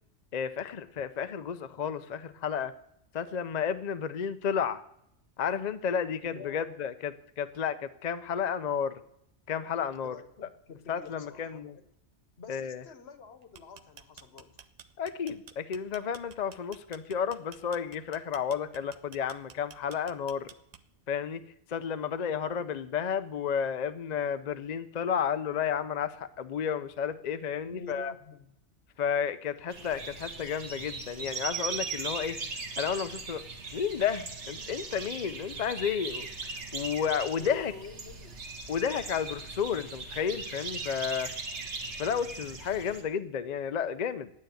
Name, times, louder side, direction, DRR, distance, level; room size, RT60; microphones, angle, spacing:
voice 1, 0.3-2.7 3.1-4.8 5.4-9.0 9.5-10.2 10.9-11.8 12.5-12.8 15.0-20.5 21.1-28.1 29.0-32.4 32.8-33.4 33.7-37.7 38.7-41.3 42.0-44.3, left 7 dB, 50° left, 11 dB, 0.6 m, -32 dB
voice 2, 6.2-6.7 10.0-11.8 12.4-14.7 27.6-28.5 37.4-38.4, left 4 dB, 65° left, 9 dB, 1.3 m, -47 dB
sound 1, 13.4-21.1, right 7 dB, 45° right, 0.6 m, -51 dB
sound 2, 29.7-43.0, right 4 dB, 70° right, 1.7 m, -39 dB
9.5 x 9.2 x 9.2 m, 0.76 s
omnidirectional pair, 1.2 m